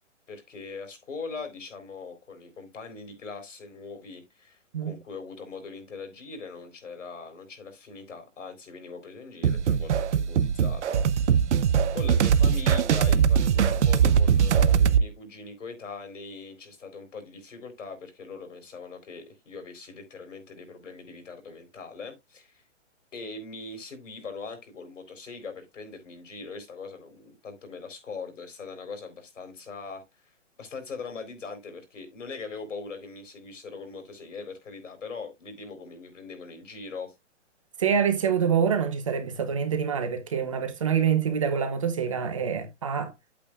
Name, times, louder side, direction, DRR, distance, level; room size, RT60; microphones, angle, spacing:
voice 1, 0.3-11.5 11.9-22.6 23.1-37.1, left 4 dB, 85° left, 4.0 m, -41 dB
sound 1, 9.4-15.0, right 7 dB, 70° right, 0.7 m, -21 dB
voice 2, 37.8-43.3, right 7 dB, 25° right, 0.9 m, -26 dB
9.1 x 8.6 x 2.4 m
hypercardioid pair, 180°, 37 cm